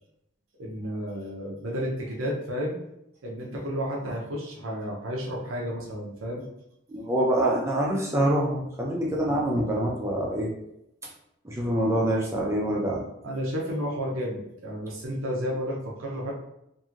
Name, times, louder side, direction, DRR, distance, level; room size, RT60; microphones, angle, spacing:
voice 1, 0.6-2.8 3.2-6.4 13.2-16.3, equal, 90° right, -2 dB, 0.7 m, -32 dB
voice 2, 6.9-10.5 11.4-13.0, right 1 dB, 15° right, -2 dB, 0.5 m, -25 dB
2.9 x 2.6 x 2.4 m, 0.81 s
head